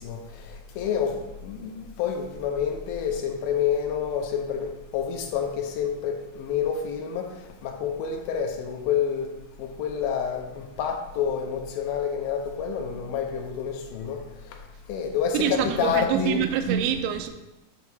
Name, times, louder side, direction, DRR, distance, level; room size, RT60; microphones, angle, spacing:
voice 1, 0.0-7.3 7.6-9.3 9.6-14.2 14.9-16.4, left 7 dB, 80° left, 2 dB, 2.4 m, -28 dB
voice 2, 15.3-17.3, right 8 dB, 80° right, 6 dB, 2.5 m, -25 dB
8.1 x 2.9 x 6.0 m, 0.97 s
omnidirectional pair, 4.6 m